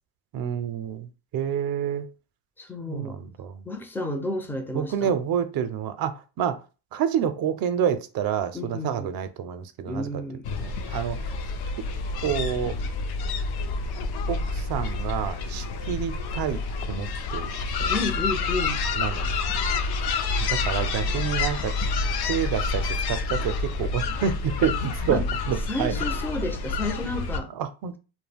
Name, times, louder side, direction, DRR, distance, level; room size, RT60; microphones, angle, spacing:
voice 1, 0.3-1.1 1.3-2.1 2.9-3.6 4.7-6.6 6.9-10.1 10.6-11.2 12.2-12.8 14.3-16.6 16.9-17.9 19.0-19.4 20.4-21.7 22.3-25.9 27.5-28.0, right 8 dB, 60° right, 0.5 m, -28 dB
voice 2, 2.6-3.2 3.7-5.1 8.5-9.1 9.9-10.5 17.9-18.8 25.1-25.2 25.7-27.5, left 2 dB, 5° left, 0.4 m, -31 dB
sound 1, 10.4-27.4, left 4 dB, 65° left, 0.5 m, -28 dB
2.2 x 2.1 x 3.4 m
cardioid pair, 95°, 42 cm